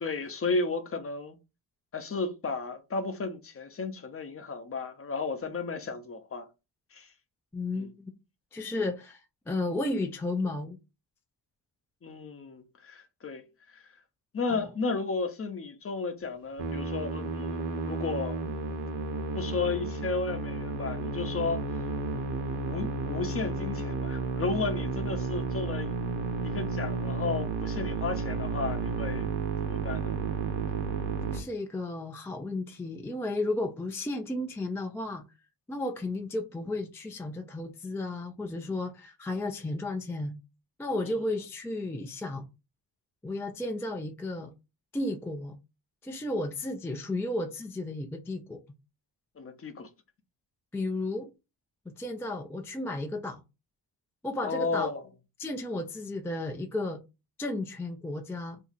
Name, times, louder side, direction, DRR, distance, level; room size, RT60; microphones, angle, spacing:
voice 1, 0.0-1.4 1.9-6.5 6.9-7.1 7.8-7.9 8.8-8.9 12.0-13.9 14.3-17.6 17.8-18.4 19.3-21.9 22.6-26.0 26.4-30.1 41.0-41.1 49.4-49.9 54.4-55.1, left 4 dB, 35° left, 0.7 m, -33 dB
voice 2, 7.5-8.1 8.5-9.2 9.5-10.8 14.5-14.7 31.2-35.2 35.7-40.4 40.8-42.5 43.2-44.5 44.9-45.6 46.0-48.6 50.7-51.3 52.0-53.4 54.2-54.9 55.4-57.0 57.4-58.6, left 2 dB, 5° left, 0.3 m, -33 dB
Musical instrument, 16.6-31.4, right 4 dB, 70° right, 1.0 m, -32 dB
2.7 x 2.4 x 4.0 m
cardioid pair, 105°, 41 cm